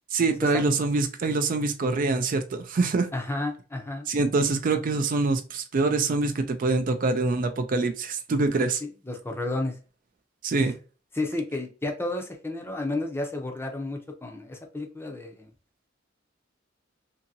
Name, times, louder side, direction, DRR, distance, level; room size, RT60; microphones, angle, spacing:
voice 1, 0.1-3.1 4.1-8.8 10.4-10.7, right 3 dB, 45° right, 8 dB, 0.4 m, -25 dB
voice 2, 3.1-4.1 8.8-9.8 10.6-10.7 11.1-15.5, left 2 dB, 10° left, 3 dB, 0.5 m, -32 dB
2.7 x 2.7 x 2.5 m, 0.35 s
head